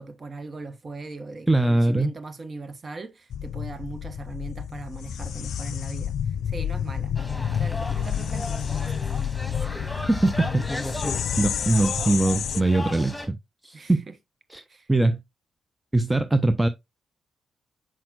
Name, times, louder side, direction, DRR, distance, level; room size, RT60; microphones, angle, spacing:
voice 1, 0.0-6.2 6.5-9.0 13.7-14.1 14.7-14.9, right 3 dB, 40° right, 1.1 m, -39 dB
voice 2, 1.5-2.1 10.1-10.5 11.4-13.4 13.6-14.0 14.5-14.6 14.9-15.2 15.9-16.7, right 2 dB, 15° right, 0.7 m, -21 dB
sound 1, 3.3-12.6, left 9 dB, 65° left, 0.4 m, -30 dB
sound 2, 7.2-13.3, left 1 dB, 10° left, 2.4 m, -34 dB
7.5 x 5.8 x 2.4 m
hypercardioid pair, 45°, 0 cm